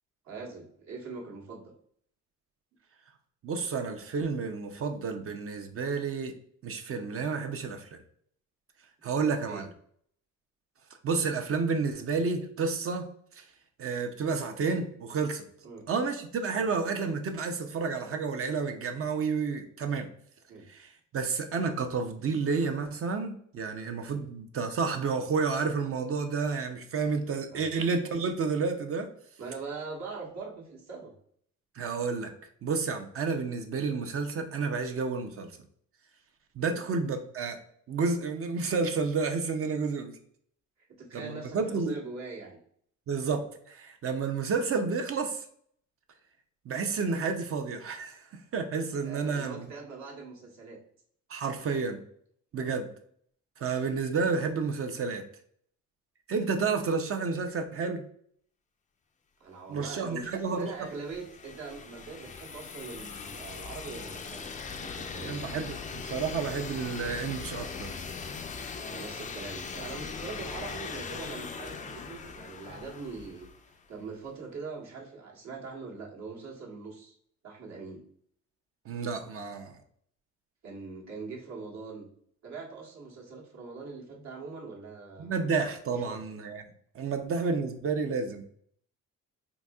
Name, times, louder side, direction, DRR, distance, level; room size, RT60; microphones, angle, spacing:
voice 1, 0.2-1.7 9.0-9.6 15.6-15.9 16.6-16.7 20.5-20.6 24.1-24.3 27.5-27.7 29.4-31.1 36.6-36.9 41.0-42.6 49.0-50.8 52.6-52.7 59.4-64.5 64.8-65.3 68.7-73.5 73.9-77.2 77.4-78.0 80.6-82.1 82.4-85.3 85.9-86.3 87.4-87.5, right 4 dB, 65° right, -1 dB, 1.2 m, -42 dB
voice 2, 3.4-6.3 6.6-7.9 9.0-9.7 11.0-13.1 13.4-13.5 13.8-15.4 15.9-20.1 20.7-20.9 21.1-29.1 31.8-32.3 32.6-35.5 36.6-37.6 37.9-40.1 41.1-42.0 43.1-45.4 46.7-48.2 48.5-49.7 51.3-52.0 52.5-52.9 53.6-55.2 56.3-58.0 59.7-60.7 65.2-68.0 78.9-79.7 85.2-86.6 86.9-88.4, right 4 dB, 50° right, 5 dB, 0.5 m, -30 dB
sound 1, 60.2-73.9, left 5 dB, 25° left, 0.3 m, -40 dB
4.0 x 2.7 x 2.3 m, 0.63 s
cardioid pair, 90°, 30 cm